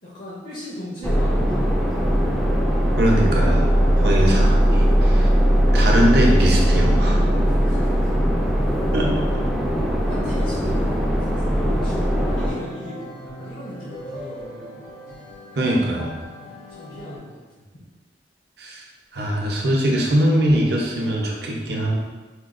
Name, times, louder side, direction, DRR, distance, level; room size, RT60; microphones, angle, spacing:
voice 1, 0.0-2.0 7.4-8.1 8.9-9.4 10.1-11.3 11.6-14.8 16.3-17.4 17.7-17.8, left 1 dB, 55° left, -7 dB, 0.7 m, -37 dB
sound 1, 1.0-12.5, equal, ahead, 0.3 m, -19 dB
voice 2, 3.0-3.7 4.0-5.3 5.7-7.2 8.9-9.1 15.6-16.1 18.6-18.8 19.1-21.9, right 1 dB, 60° right, -1 dB, 0.6 m, -21 dB
sound 2, 11.9-17.2, equal, 80° left, 0.9 m, -39 dB
4.3 x 2.3 x 2.4 m, 1.3 s
head